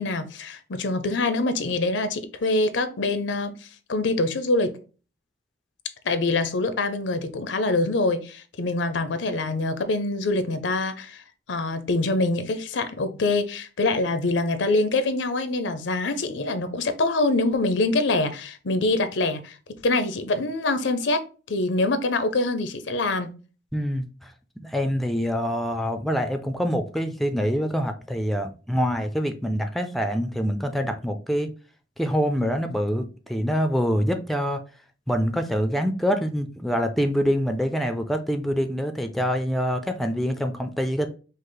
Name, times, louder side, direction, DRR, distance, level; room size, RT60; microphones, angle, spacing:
voice 1, 0.0-3.5 3.9-4.7 6.0-11.2 11.5-19.6 19.8-21.2 21.5-23.3, left 2 dB, 80° left, 0.6 m, -25 dB
voice 2, 23.7-24.3 24.6-31.5 32.0-34.6 35.1-41.1, equal, ahead, 0.4 m, -25 dB
5.3 x 2.0 x 3.8 m
head